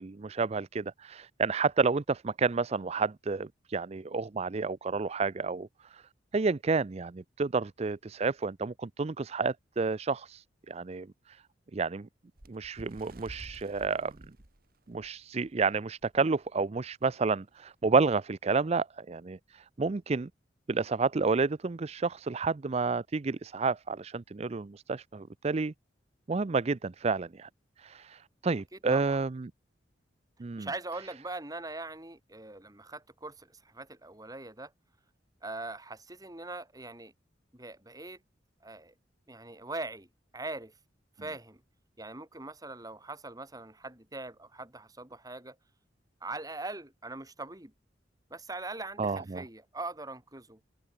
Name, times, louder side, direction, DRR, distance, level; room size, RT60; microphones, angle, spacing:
voice 1, 0.0-6.0 6.3-11.4 11.7-12.1 12.5-14.1 14.9-20.3 20.7-25.7 26.3-27.5 27.8-29.5 30.4-30.7 49.0-49.4, right 4 dB, 35° right, 0.5 m, -30 dB
Bird, 12.4-15.5 16.0-16.2 16.5-16.7 17.5-17.6, right 1 dB, 55° right, 2.4 m, -51 dB
voice 2, 28.7-29.2 30.6-34.7 35.4-37.1 37.5-38.2 38.6-38.9 39.3-40.1 40.3-40.7 41.2-41.6 42.0-45.6 46.2-47.7 48.3-50.6, right 2 dB, 20° right, 3.3 m, -41 dB
head